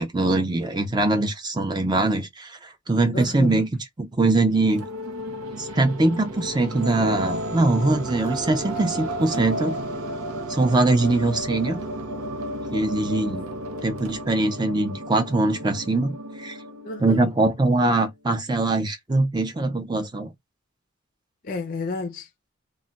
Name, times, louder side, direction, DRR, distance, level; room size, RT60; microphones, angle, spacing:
voice 1, 0.0-3.7 4.0-4.8 5.6-9.8 10.5-11.8 12.7-13.5 13.8-16.6 17.0-20.3, right 2 dB, 20° right, 0.5 m, -22 dB
voice 2, 3.1-3.6 13.2-13.3 16.8-17.2 21.4-22.5, left 3 dB, 40° left, 0.4 m, -32 dB
sound 1, 4.6-17.6, right 1 dB, 90° right, 0.6 m, -33 dB
2.3 x 2.1 x 3.9 m
head